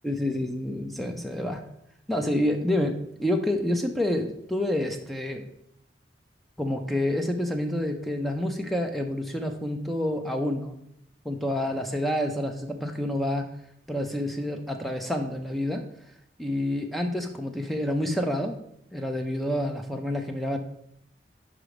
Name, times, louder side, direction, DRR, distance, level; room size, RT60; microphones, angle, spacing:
voice 1, 0.0-1.6 2.1-5.5 6.6-10.8 11.2-13.5 13.9-15.9 16.4-18.6 18.9-20.6, left 1 dB, ahead, 4 dB, 0.5 m, -28 dB
5.0 x 4.9 x 5.0 m, 0.76 s
head